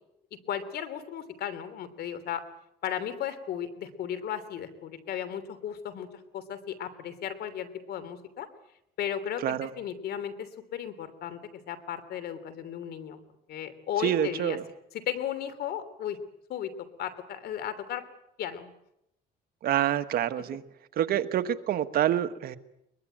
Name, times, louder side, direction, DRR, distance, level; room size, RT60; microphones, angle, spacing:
voice 1, 0.5-2.4 2.8-6.1 6.3-8.5 9.0-11.4 11.7-13.2 13.5-14.6 15.1-16.2 16.5-18.0 18.4-18.7, left 9 dB, 70° left, 13 dB, 3.1 m, -35 dB
voice 2, 9.4-9.7 14.0-14.6 19.6-20.6 20.9-22.6, right 11 dB, 65° right, 10 dB, 1.5 m, -27 dB
22.0 x 22.0 x 9.1 m, 0.81 s
cardioid pair, 110°, 17 cm